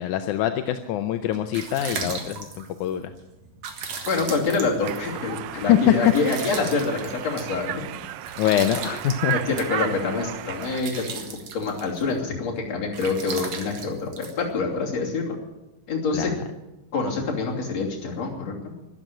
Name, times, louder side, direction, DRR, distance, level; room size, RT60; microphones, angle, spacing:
voice 1, 0.0-3.1 5.5-5.9 8.4-9.3 16.1-16.3, left 11 dB, 75° left, 7 dB, 1.9 m, -24 dB
sound 1, 1.3-15.0, right 5 dB, 55° right, 2.5 m, -38 dB
voice 2, 4.0-7.8 9.3-11.2 11.5-15.4 15.9-16.3 16.9-18.7, left 4 dB, 50° left, -2 dB, 3.8 m, -26 dB
Conversation, 4.8-10.8, right 13 dB, 90° right, 1.6 m, -34 dB
12.5 x 12.0 x 9.0 m, 0.99 s
omnidirectional pair, 4.0 m